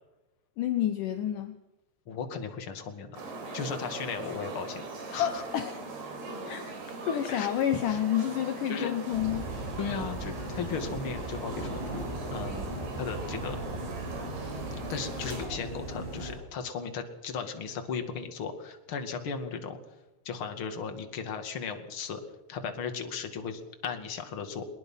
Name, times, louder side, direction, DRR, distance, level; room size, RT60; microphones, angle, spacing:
voice 1, 0.6-1.6 5.2-5.8 6.5-6.8 7.1-9.5, left 11 dB, 75° left, 8 dB, 1.9 m, -29 dB
voice 2, 2.1-3.2 3.5-4.8 5.1-5.4 7.3-7.5 7.9-8.0 8.7-8.9 9.8-11.8 12.3-13.6 14.9-19.8 20.2-22.2 22.5-24.7, left 6 dB, 40° left, 6 dB, 2.2 m, -36 dB
sound 1, 3.1-15.5, right 3 dB, 65° right, 5.9 m, -41 dB
sound 2, 9.1-16.3, right 1 dB, 85° right, 9.9 m, -37 dB
21.5 x 21.5 x 5.7 m, 0.99 s
omnidirectional pair, 5.1 m